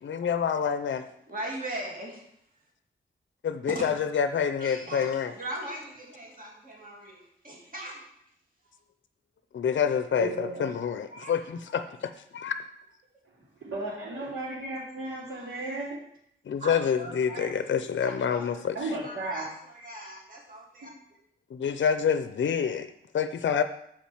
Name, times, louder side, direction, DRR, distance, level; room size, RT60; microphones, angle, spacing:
voice 1, 0.0-1.1 3.4-5.3 9.5-12.5 16.5-18.8 21.5-23.6, left 7 dB, 60° left, 10 dB, 0.6 m, -27 dB
voice 2, 1.3-2.2 3.7-3.9 4.6-8.0 10.6-11.6 15.3-15.6 16.6-17.5 17.8-20.9, right 1 dB, 40° right, -2 dB, 2.7 m, -40 dB
voice 3, 10.2-10.6 13.6-16.0 18.7-19.5 20.8-20.9, right 2 dB, 75° right, -10 dB, 3.8 m, -34 dB
7.4 x 4.9 x 7.2 m, 0.72 s
wide cardioid pair, 120°, 21 cm